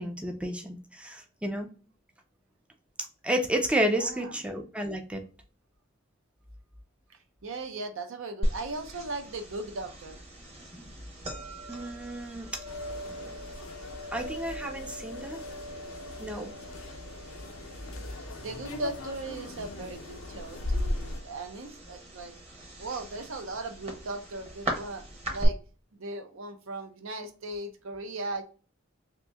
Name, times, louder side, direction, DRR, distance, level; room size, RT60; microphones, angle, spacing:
voice 1, 0.0-1.7 3.2-5.2 11.7-12.5 14.1-15.4 16.2-16.5, right 1 dB, 5° right, 0.4 m, -31 dB
voice 2, 3.9-4.4 7.4-10.2 18.4-22.3 22.8-25.0 25.3-25.6 25.9-28.4, right 2 dB, 65° right, 0.6 m, -38 dB
sound 1, 8.4-25.5, equal, 30° right, 1.0 m, -39 dB
sound 2, 12.7-21.2, left 2 dB, 85° left, 0.6 m, -39 dB
2.9 x 2.6 x 3.3 m
head